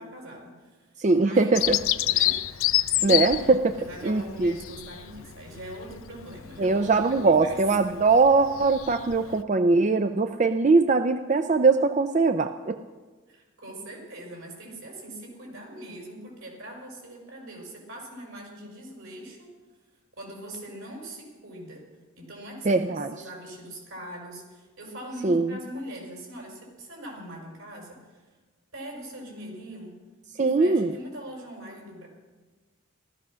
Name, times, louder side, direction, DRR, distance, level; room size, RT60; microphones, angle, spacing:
voice 1, 0.0-1.5 2.0-2.4 2.9-3.5 3.8-6.9 7.2-7.6 13.3-19.5 20.2-21.9 22.2-28.2 28.7-30.0 30.4-32.1, right 1 dB, 75° right, 0 dB, 5.3 m, -42 dB
voice 2, 1.0-1.8 3.0-3.7 4.0-4.6 6.6-12.8 22.6-23.1 25.2-25.6 30.4-30.9, right 3 dB, 35° right, 8 dB, 0.4 m, -21 dB
Bird vocalization bird call bird song, 1.5-9.4, left 14 dB, 75° left, 0.5 m, -29 dB
16.0 x 13.5 x 6.2 m, 1.4 s
head